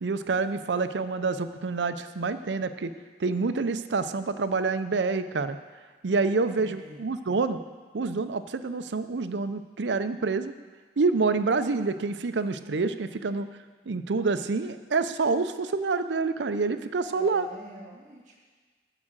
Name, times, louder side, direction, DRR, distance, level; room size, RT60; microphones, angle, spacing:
voice 1, 0.0-2.9 3.2-5.6 6.0-7.6 7.9-10.5 11.0-13.5 13.9-17.5, right 4 dB, 90° right, 11 dB, 0.6 m, -27 dB
voice 2, 6.5-7.0 17.1-18.4, right 1 dB, 45° right, -1 dB, 2.1 m, -46 dB
12.5 x 4.9 x 7.4 m, 1.4 s
head